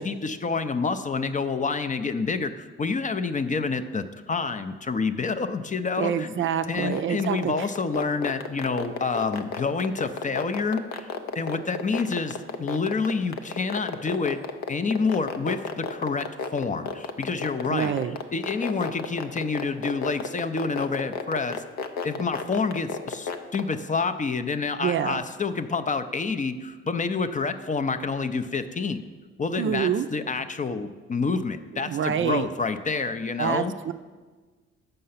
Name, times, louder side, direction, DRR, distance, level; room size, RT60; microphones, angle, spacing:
voice 1, 0.0-6.3 6.7-11.1 11.3-14.4 14.7-16.3 16.5-17.9 18.3-21.6 22.0-29.0 29.4-33.7, left 4 dB, 25° left, 10 dB, 0.5 m, -28 dB
voice 2, 6.0-7.7 17.7-18.2 24.8-25.2 29.6-30.1 31.7-32.5 33.4-33.9, right 8 dB, 45° right, 10 dB, 0.4 m, -27 dB
sound 1, 6.8-23.7, left 5 dB, 70° left, 0.7 m, -31 dB
6.6 x 5.5 x 5.6 m, 1.4 s
hypercardioid pair, 55°, 29 cm